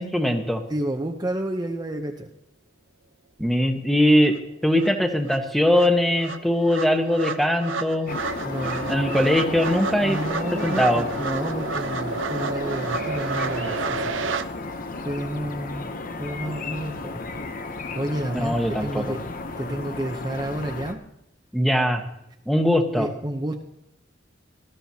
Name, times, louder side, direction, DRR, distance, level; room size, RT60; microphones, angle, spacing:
voice 1, 0.0-0.6 3.4-4.3 4.6-8.2 8.9-10.2 10.5-11.1 18.3-19.0 21.5-22.0 22.5-23.1, equal, ahead, 4 dB, 1.1 m, -21 dB
voice 2, 0.7-2.3 8.4-9.1 10.0-14.1 15.0-15.9 16.2-19.2 19.6-21.0 22.9-23.6, right 1 dB, 20° right, 1 dB, 0.7 m, -30 dB
sound 1, 4.3-4.4 4.8-14.4, right 4 dB, 80° right, 0.7 m, -31 dB
sound 2, 8.1-20.9, left 3 dB, 45° left, 0.8 m, -33 dB
19.5 x 13.5 x 2.8 m, 0.84 s
head